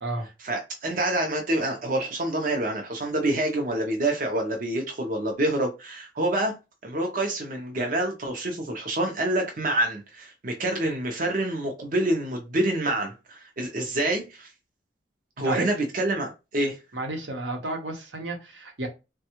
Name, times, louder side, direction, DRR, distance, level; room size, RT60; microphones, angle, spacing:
voice 1, 0.4-6.6 6.8-14.5 15.4-16.8, right 1 dB, 50° right, 0.6 m, -27 dB
voice 2, 16.9-18.9, right 2 dB, 90° right, 0.9 m, -31 dB
3.4 x 2.2 x 2.9 m
head